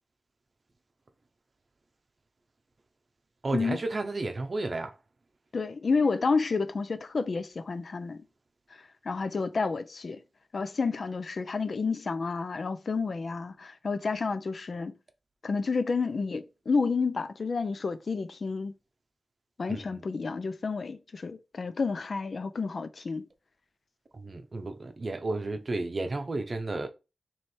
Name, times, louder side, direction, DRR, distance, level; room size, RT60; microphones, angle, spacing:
voice 1, 3.4-4.9 19.7-20.0 24.1-26.9, right 2 dB, 50° right, 0.6 m, -32 dB
voice 2, 5.5-8.2 9.0-10.2 10.5-14.9 15.4-18.7 19.6-23.3, left 4 dB, 60° left, 0.4 m, -30 dB
3.2 x 3.1 x 4.3 m
wide cardioid pair, 70°, 0 cm